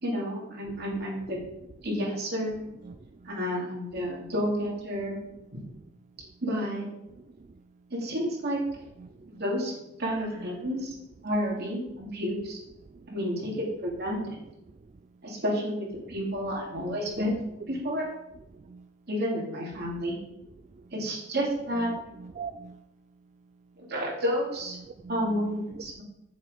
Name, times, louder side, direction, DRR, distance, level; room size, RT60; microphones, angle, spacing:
voice 1, 0.0-1.4 1.8-2.7 3.2-5.2 5.5-5.6 6.4-6.9 7.9-8.6 9.3-9.7 10.0-11.0 11.2-12.6 13.1-14.4 15.2-17.3 17.7-18.1 19.1-20.2 20.9-21.9 23.8-24.8 25.1-26.0, equal, 55° right, -2 dB, 2.8 m, -30 dB
voice 2, 21.7-22.7 24.7-25.7, right 5 dB, 40° right, 10 dB, 0.4 m, -42 dB
8.7 x 7.1 x 5.1 m, 0.86 s
head